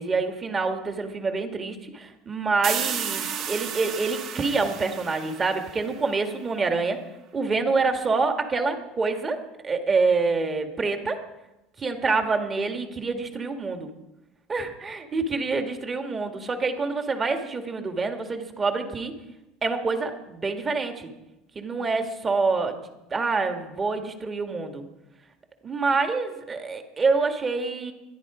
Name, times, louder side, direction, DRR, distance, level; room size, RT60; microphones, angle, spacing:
voice 1, 0.0-7.0 7.3-11.2 11.8-13.9 14.5-19.1 19.6-21.1 21.6-22.8 23.1-24.8 25.6-27.9, right 4 dB, 20° right, 6 dB, 1.7 m, -26 dB
sound 1, 2.6-6.2, right 8 dB, 50° right, 1.6 m, -33 dB
25.0 x 11.0 x 4.9 m, 1.0 s
cardioid pair, 145°, 0 cm